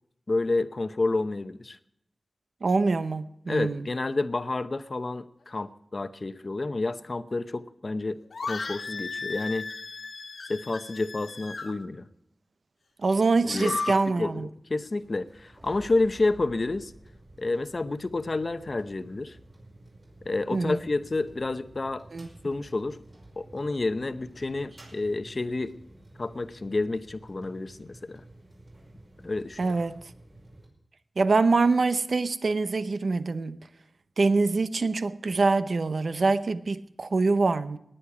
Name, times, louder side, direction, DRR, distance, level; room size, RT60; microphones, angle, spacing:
voice 1, 0.3-1.8 3.5-9.7 10.5-12.1 13.4-16.9 17.4-19.4 20.2-22.0 22.4-23.0 23.4-25.8 26.2-28.2 29.2-29.6, left 2 dB, 45° left, 0.8 m, -29 dB
voice 2, 2.6-3.9 13.0-14.5 20.5-20.8 22.1-22.3 29.6-30.0 31.2-33.6 34.2-37.8, right 3 dB, 65° right, 0.8 m, -24 dB
sound 1, 8.3-11.7 13.4-13.9, left 4 dB, 85° left, 1.8 m, -35 dB
sound 2, 14.6-30.7, right 1 dB, 40° right, 5.3 m, -52 dB
18.5 x 10.5 x 4.9 m
wide cardioid pair, 100°, 0 cm